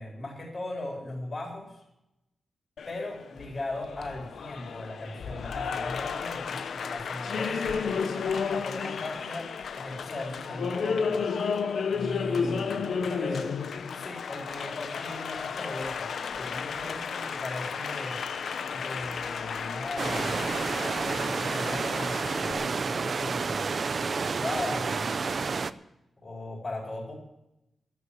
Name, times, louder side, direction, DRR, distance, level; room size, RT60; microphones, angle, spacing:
voice 1, 0.0-1.8 2.9-11.3 11.9-13.5 13.9-16.1 16.4-18.2 18.7-20.4 21.0-25.2 26.2-27.1, left 2 dB, 30° left, -2 dB, 4.1 m, -38 dB
Applause, 2.8-22.5, left 6 dB, 75° left, 0.8 m, -33 dB
sound 1, 20.0-25.7, right 4 dB, 40° right, 0.5 m, -30 dB
12.5 x 8.5 x 9.8 m, 0.88 s
wide cardioid pair, 160°, 0 cm